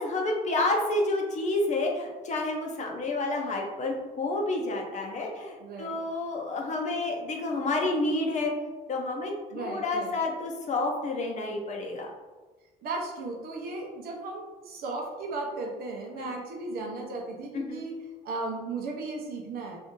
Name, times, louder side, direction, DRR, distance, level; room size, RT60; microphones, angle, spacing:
voice 1, 0.0-8.5 8.9-12.1 16.2-16.3 17.5-17.8, left 2 dB, 45° left, 1 dB, 0.7 m, -29 dB
voice 2, 5.6-6.0 9.5-10.2 12.8-18.0 18.2-19.8, right 3 dB, 65° right, 1 dB, 0.8 m, -36 dB
2.7 x 2.6 x 3.6 m, 1.3 s
cardioid pair, 110°, 17 cm